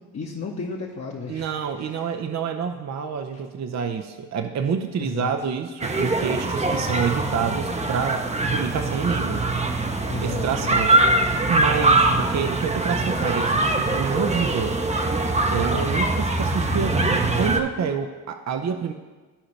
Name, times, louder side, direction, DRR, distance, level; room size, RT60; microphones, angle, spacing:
voice 1, 0.1-2.2 3.3-3.4 5.0-5.3 10.1-11.0 12.0-12.4 15.7-16.2, left 5 dB, 35° left, -3 dB, 1.3 m, -35 dB
voice 2, 1.3-8.3 8.5-9.4 10.2-11.0 11.4-14.8 15.5-18.9, right 6 dB, 40° right, 6 dB, 0.7 m, -27 dB
sound 1, 5.8-17.6, right 2 dB, 15° right, 0.9 m, -23 dB
14.0 x 4.9 x 3.3 m, 1.3 s
hypercardioid pair, 55°, 43 cm